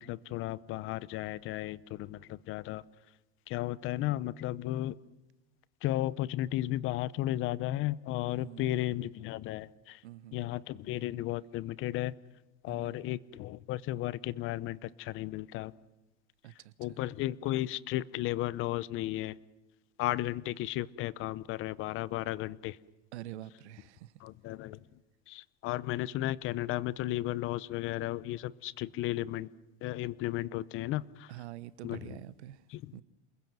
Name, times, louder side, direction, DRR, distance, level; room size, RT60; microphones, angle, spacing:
voice 1, 0.0-2.8 3.5-5.0 5.8-10.0 10.3-12.1 12.6-15.7 16.8-19.4 20.0-22.8 24.2-24.8 25.3-29.5 29.8-31.3 31.8-32.2 32.7-33.0, left 15 dB, 40° left, 0.8 m, -34 dB
voice 2, 8.3-8.8 10.0-10.5 12.7-13.0 16.4-17.0 23.1-24.1 31.3-32.6 32.9-33.0, right 14 dB, 80° right, 1.1 m, -46 dB
28.0 x 21.0 x 7.6 m
supercardioid pair, 135°, 33 cm